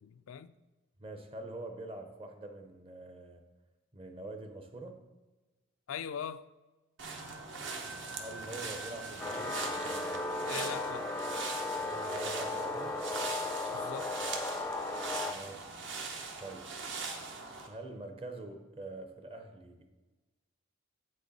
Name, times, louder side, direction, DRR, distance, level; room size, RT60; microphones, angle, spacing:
voice 1, 0.0-0.5 5.9-6.5 10.5-11.1 13.7-14.2, left 7 dB, 85° left, 0.4 m, -40 dB
voice 2, 1.0-3.4 3.9-5.0 8.2-9.6 11.8-13.0 15.2-15.8 16.4-16.7 17.7-19.9, right 2 dB, 25° right, 0.7 m, -45 dB
sound 1, 7.0-17.7, right 4 dB, 60° right, 1.0 m, -41 dB
sound 2, 7.1-13.6, right 2 dB, 80° right, 0.5 m, -51 dB
sound 3, 9.2-15.3, left 2 dB, 10° left, 0.4 m, -36 dB
8.0 x 6.3 x 4.1 m
head